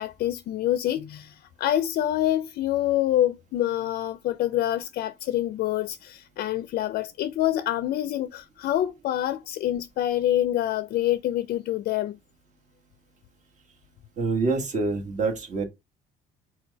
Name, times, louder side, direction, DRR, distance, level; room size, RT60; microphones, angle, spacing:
voice 1, 0.0-12.2, left 12 dB, 60° left, 0.4 m, -26 dB
voice 2, 14.2-15.7, right 3 dB, 45° right, 1.3 m, -26 dB
4.5 x 2.2 x 4.0 m
cardioid pair, 110°, 17 cm